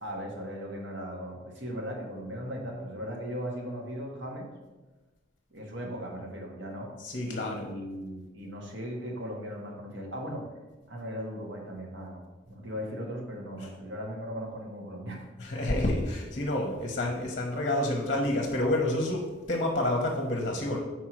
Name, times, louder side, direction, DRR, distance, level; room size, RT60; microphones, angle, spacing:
voice 1, 0.0-4.5 5.5-6.9 7.2-10.5 10.9-15.3, equal, 60° right, 0 dB, 1.3 m, -38 dB
voice 2, 7.0-7.7 15.4-20.8, left 1 dB, 45° left, 0 dB, 0.9 m, -29 dB
4.6 x 4.4 x 6.0 m, 1.2 s
head